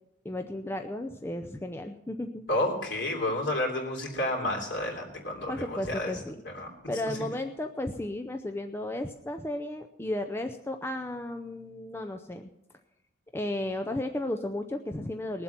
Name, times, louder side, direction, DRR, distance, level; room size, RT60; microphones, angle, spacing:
voice 1, 0.2-2.4 5.5-6.4 6.9-12.5 13.3-15.4, left 1 dB, 10° left, 5 dB, 0.5 m, -34 dB
voice 2, 2.5-6.1 6.4-6.7 7.1-7.2, left 1 dB, 60° left, 1 dB, 3.3 m, -30 dB
20.5 x 7.7 x 6.0 m, 0.87 s
head